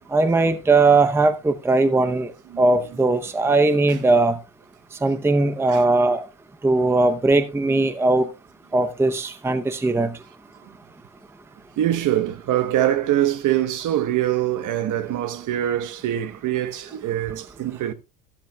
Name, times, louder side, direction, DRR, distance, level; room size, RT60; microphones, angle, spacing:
voice 1, 0.1-2.3 2.6-4.4 5.0-6.2 6.6-8.3 8.7-10.2, right 3 dB, 5° right, 0.7 m, -19 dB
voice 2, 11.8-17.9, right 12 dB, 55° right, 1.1 m, -23 dB
13.0 x 12.0 x 2.3 m
cardioid pair, 110°, 38 cm